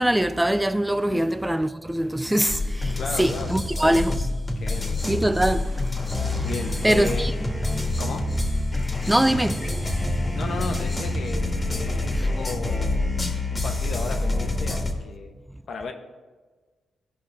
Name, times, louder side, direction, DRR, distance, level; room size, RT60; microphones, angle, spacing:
voice 1, 0.0-4.2 5.1-5.8 6.8-7.3 9.1-9.9 12.2-12.3, right 1 dB, 10° right, 0.3 m, -23 dB
sound 1, 2.2-13.4, right 1 dB, 50° right, 1.5 m, -43 dB
sound 2, 2.5-14.9, left 2 dB, 25° left, 1.6 m, -26 dB
voice 2, 2.9-4.0 4.6-4.9 6.4-7.3 8.0-8.3 10.3-13.2 13.5-15.3 15.7-15.9, left 4 dB, 65° left, 1.0 m, -35 dB
15.5 x 5.3 x 3.4 m
cardioid pair, 80°, 0 cm